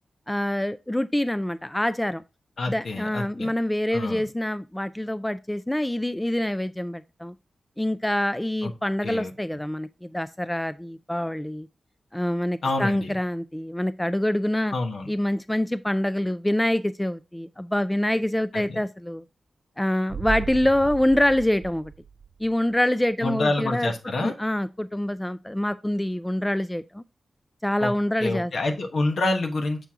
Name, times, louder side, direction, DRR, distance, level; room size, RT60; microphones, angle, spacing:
voice 1, 0.3-2.2 2.7-7.3 7.8-11.7 12.1-14.7 15.1-19.2 19.8-21.9 22.4-23.9 24.2-27.0 27.6-28.5, left 1 dB, 10° left, 0.3 m, -25 dB
voice 2, 2.6-3.5 3.9-4.2 8.6-8.7 9.0-9.3 12.6-13.1 14.7-15.1 18.5-18.8 23.2-24.3 27.8-27.9 28.2-29.8, left 2 dB, 75° left, 1.3 m, -27 dB
sound 1, 20.1-22.8 23.1-23.2, right 6 dB, 75° right, 0.3 m, -36 dB
6.8 x 4.5 x 3.6 m
wide cardioid pair, 100°, 0 cm